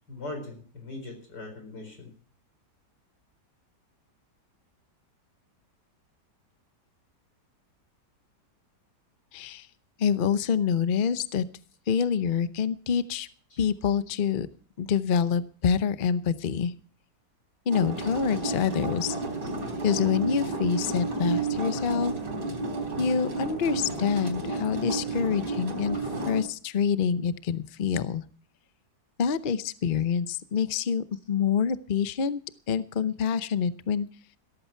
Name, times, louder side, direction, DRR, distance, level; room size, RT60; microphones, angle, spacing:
voice 1, 0.1-2.1 13.5-13.6 19.4-19.5, left 2 dB, 75° left, 5 dB, 4.9 m, -40 dB
voice 2, 9.3-9.7 10.0-11.4 11.9-13.3 13.6-14.5 14.8-16.7 17.7-19.2 19.8-22.1 23.0-26.0 26.3-28.2 29.2-32.4 32.7-34.1, left 7 dB, 45° left, 13 dB, 0.7 m, -26 dB
sound 1, 17.7-26.4, right 3 dB, 85° right, 4.4 m, -31 dB
16.5 x 14.0 x 4.5 m, 0.43 s
omnidirectional pair, 1.9 m